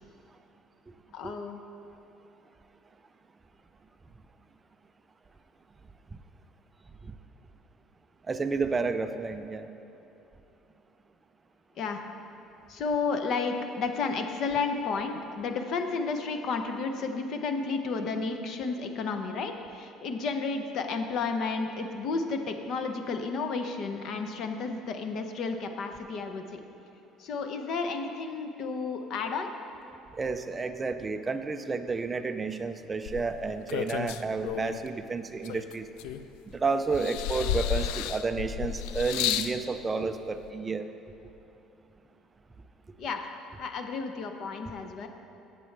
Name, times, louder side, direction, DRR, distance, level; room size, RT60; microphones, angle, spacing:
voice 1, 1.1-1.6 11.8-12.0 12.7-26.6 27.2-29.5 37.0-37.1 43.0-43.2 43.6-45.1, left 4 dB, 40° left, 6 dB, 0.7 m, -32 dB
voice 2, 8.3-9.7 30.2-35.9 36.5-40.8, right 4 dB, 15° right, 8 dB, 0.4 m, -31 dB
sound 1, 33.1-34.9 35.4-36.5 36.9-39.6 40.5-40.6, left 10 dB, 90° left, 0.3 m, -32 dB
16.5 x 6.8 x 3.3 m, 2.9 s
cardioid pair, 180°, 0 cm